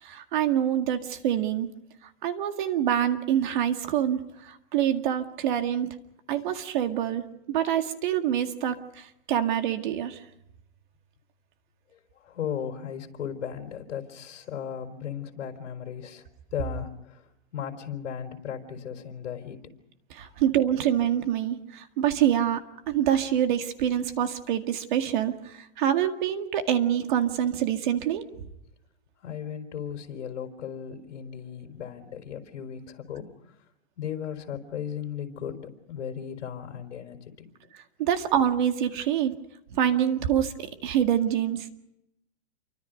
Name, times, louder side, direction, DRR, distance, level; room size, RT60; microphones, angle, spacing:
voice 1, 0.0-1.7 2.0-6.0 6.3-10.2 20.1-28.5 38.0-39.3 39.7-41.7, right 10 dB, 40° right, 7 dB, 2.0 m, -26 dB
voice 2, 11.9-16.3 16.5-19.6 29.2-33.3 34.0-37.5, left 8 dB, 70° left, 4 dB, 4.6 m, -36 dB
28.5 x 24.5 x 5.3 m, 0.83 s
hypercardioid pair, 170°, 37 cm